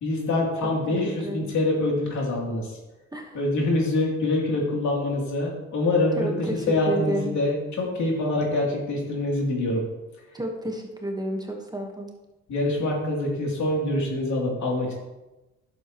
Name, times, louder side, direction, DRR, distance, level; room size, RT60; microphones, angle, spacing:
voice 1, 0.0-2.7 3.3-9.8 12.5-14.9, left 2 dB, 70° left, -2 dB, 3.0 m, -25 dB
voice 2, 0.6-1.5 3.1-3.4 6.2-7.3 10.3-12.1, right 1 dB, 15° right, 2 dB, 1.3 m, -31 dB
11.5 x 7.2 x 3.1 m, 1.1 s
cardioid pair, 90°, 30 cm